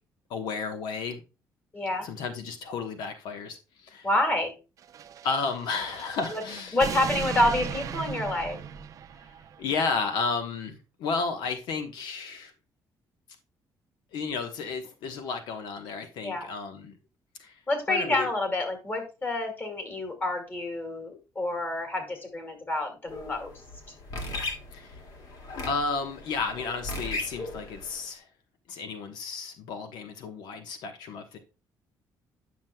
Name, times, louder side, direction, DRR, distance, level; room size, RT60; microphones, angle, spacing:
voice 1, 0.3-1.2 2.0-4.1 5.2-6.8 9.6-12.5 14.1-16.9 17.4-17.6 17.9-18.3 24.7-25.0 25.6-28.3 28.7-31.4, left 4 dB, 85° left, 1.1 m, -32 dB
voice 2, 1.7-2.1 4.0-4.5 6.3-6.4 6.7-8.6 16.2-16.5 17.7-23.5, left 1 dB, 25° left, 2.3 m, -28 dB
sound 1, 4.8-9.6, right 7 dB, 50° right, 0.5 m, -37 dB
sound 2, 23.1-28.0, left 2 dB, 60° left, 2.2 m, -38 dB
9.5 x 6.1 x 2.2 m
cardioid pair, 125°, 7 cm